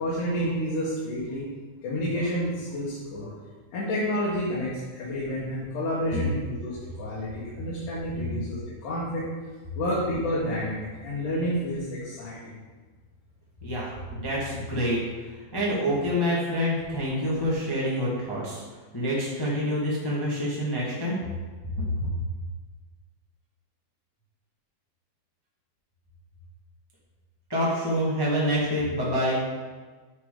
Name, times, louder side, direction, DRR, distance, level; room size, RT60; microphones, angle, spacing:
voice 1, 0.0-1.4 1.8-3.3 3.7-9.3 9.8-12.5, equal, 85° left, -7 dB, 3.0 m, -29 dB
voice 2, 13.6-15.0 15.2-18.6 18.9-21.2 21.8-22.1 27.5-29.4, equal, 15° left, -7 dB, 0.8 m, -27 dB
10.0 x 4.7 x 3.8 m, 1.4 s
omnidirectional pair, 3.6 m